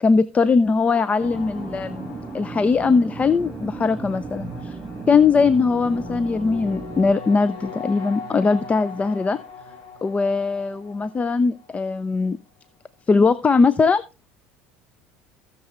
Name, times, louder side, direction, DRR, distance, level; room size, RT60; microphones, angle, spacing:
voice 1, 0.0-4.8 5.1-9.4 10.0-12.4 13.1-14.0, left 4 dB, 25° left, 16 dB, 0.5 m, -20 dB
sound 1, 0.9-12.0, left 4 dB, 70° left, 2.7 m, -40 dB
sound 2, 1.2-7.1, right 4 dB, 20° right, 0.6 m, -36 dB
16.0 x 6.7 x 3.0 m, 0.29 s
hypercardioid pair, 80°, 5 cm